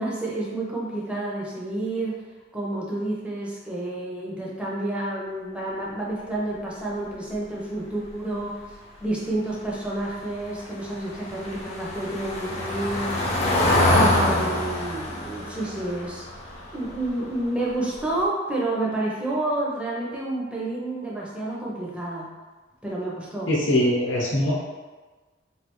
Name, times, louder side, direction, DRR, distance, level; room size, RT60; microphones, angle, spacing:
voice 1, 0.0-2.2 2.5-8.6 9.0-16.2 16.7-22.3 22.8-23.5, right 2 dB, 5° right, -6 dB, 0.6 m, -29 dB
Car passing by / Engine, 10.4-17.4 17.7-18.0 18.2-18.3, left 1 dB, 35° left, 0.5 m, -25 dB
voice 2, 23.5-24.5, left 1 dB, 75° left, -6 dB, 0.8 m, -22 dB
3.3 x 2.4 x 3.0 m, 1.3 s
head